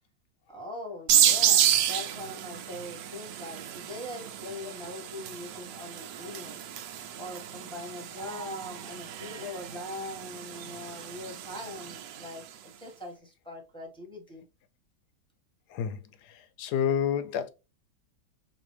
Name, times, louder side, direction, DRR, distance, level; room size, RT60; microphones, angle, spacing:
voice 1, 0.5-6.6 7.2-14.4, left 1 dB, 5° left, 0.8 m, -41 dB
sound 1, 1.1-12.4, right 10 dB, 80° right, 1.2 m, -30 dB
voice 2, 15.7-17.5, left 8 dB, 75° left, 1.1 m, -30 dB
5.1 x 2.6 x 3.2 m
omnidirectional pair, 1.9 m